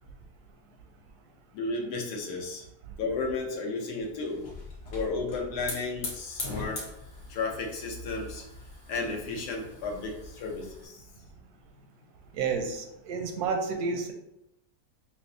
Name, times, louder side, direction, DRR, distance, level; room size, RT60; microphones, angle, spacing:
voice 1, 1.5-2.6 3.0-4.4 4.9-6.8 7.3-8.4 8.9-11.0, left 3 dB, 85° left, 0 dB, 1.3 m, -33 dB
Hiss / Fire, 4.0-10.8, left 2 dB, 50° left, 1.1 m, -41 dB
voice 2, 12.3-14.1, right 5 dB, 85° right, 4 dB, 1.1 m, -30 dB
5.7 x 2.0 x 2.6 m, 0.81 s
omnidirectional pair, 1.6 m